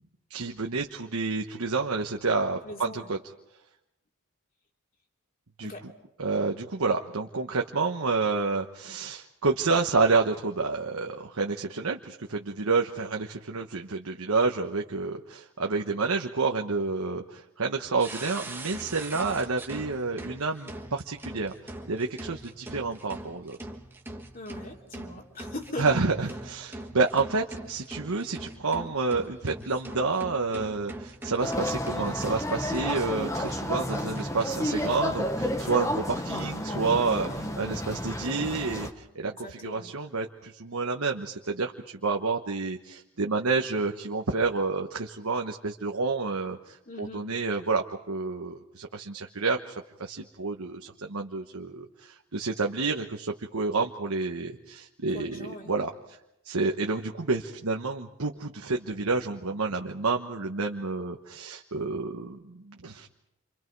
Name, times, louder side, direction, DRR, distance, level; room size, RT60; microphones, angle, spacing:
voice 1, 0.3-3.2 5.6-5.7 6.2-21.5 21.9-23.6 25.8-37.3 37.6-56.2 56.4-63.1, right 4 dB, 75° right, 2 dB, 1.2 m, -29 dB
voice 2, 2.6-3.1 5.6-5.9 24.3-25.9 37.1-37.5 39.4-39.9 46.9-47.2 55.1-55.7, left 1 dB, 40° left, 1 dB, 3.3 m, -40 dB
sound 1, 18.0-33.0 33.4-33.5 33.9-34.5, right 1 dB, 10° right, 1.6 m, -42 dB
sound 2, 31.4-38.9, left 1 dB, 15° left, 1.0 m, -31 dB
29.5 x 26.5 x 4.7 m, 0.87 s
head